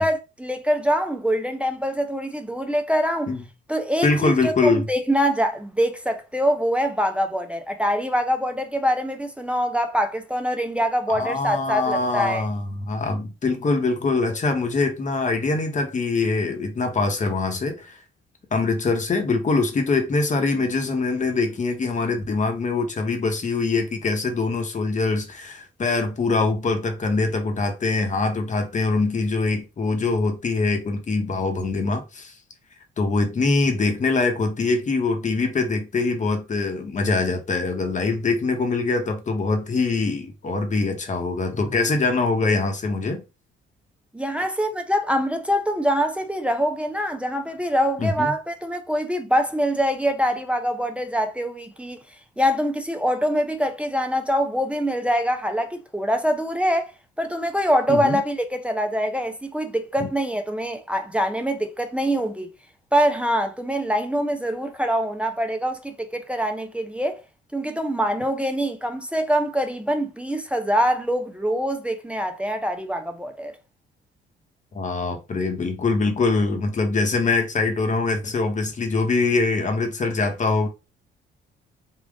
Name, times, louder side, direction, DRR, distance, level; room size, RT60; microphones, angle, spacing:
voice 1, 0.0-3.3 3.7-12.5 44.1-52.0 52.4-62.5 62.9-67.2 67.5-73.6, equal, 5° right, 0.5 m, -24 dB
voice 2, 4.0-4.9 11.1-18.0 18.5-32.3 33.0-43.2 48.0-48.3 57.9-58.2 60.0-60.1 74.7-80.7, left 3 dB, 40° left, 1.1 m, -23 dB
3.7 x 2.4 x 3.5 m
cardioid pair, 90°, 20 cm